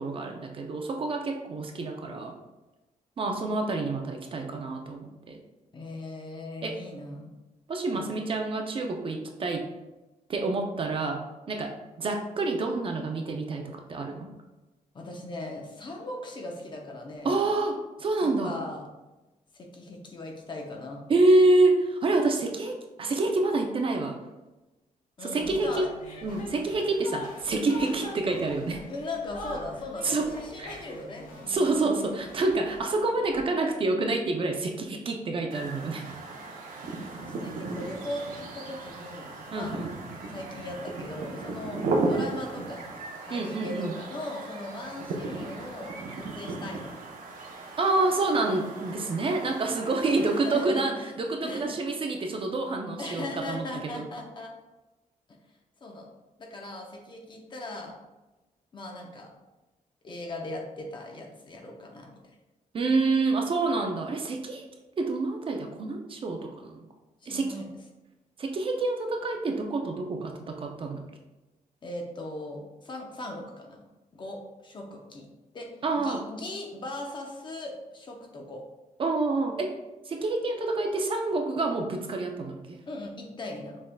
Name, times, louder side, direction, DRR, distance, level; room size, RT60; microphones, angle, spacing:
voice 1, 0.0-2.3 3.2-5.4 6.6-6.8 7.7-9.7 10.3-14.3 17.2-18.5 21.1-24.1 25.2-25.9 26.2-28.8 30.0-30.3 30.6-30.7 31.5-36.1 39.5-39.9 43.3-43.9 47.8-54.0 62.7-64.6 65.0-66.8 67.3-67.6 68.4-71.0 75.8-76.2 79.0-79.8 80.1-82.8, right 2 dB, 40° right, 3 dB, 0.5 m, -27 dB
voice 2, 5.7-7.3 7.9-8.2 14.9-17.3 18.2-18.8 19.5-21.0 25.2-25.9 28.9-31.3 36.3-36.5 37.2-39.7 40.3-42.9 43.3-46.9 50.0-51.1 51.4-51.7 53.0-54.5 55.8-56.1 56.4-57.9 58.7-59.3 60.0-62.2 67.2-67.7 71.8-73.8 74.1-75.3 75.5-75.7 76.0-78.6 82.9-83.8, left 2 dB, 35° left, 1 dB, 0.8 m, -39 dB
sound 1, 25.4-33.4, left 1 dB, 85° left, 1.0 m, -47 dB
Chuckle chortle, 26.0-31.2, left 3 dB, 60° left, 1.1 m, -41 dB
sound 2, 35.5-50.6, right 3 dB, 80° right, 0.8 m, -36 dB
6.3 x 3.6 x 2.2 m, 1.1 s
wide cardioid pair, 155°, 14 cm